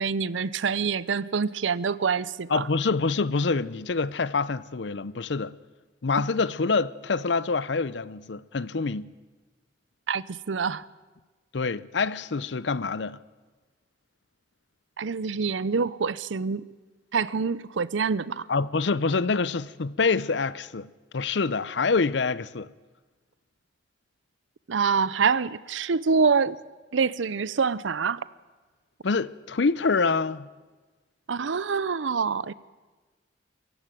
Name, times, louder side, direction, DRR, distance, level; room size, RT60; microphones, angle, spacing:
voice 1, 0.0-2.7 10.1-10.8 15.0-16.6 17.1-18.5 24.7-26.6 26.9-28.2 31.3-32.5, right 5 dB, 90° right, 0.6 m, -26 dB
voice 2, 2.5-5.5 6.0-9.1 11.5-13.2 18.5-22.7 29.0-30.5, left 4 dB, 70° left, 0.6 m, -26 dB
23.5 x 15.0 x 9.2 m
head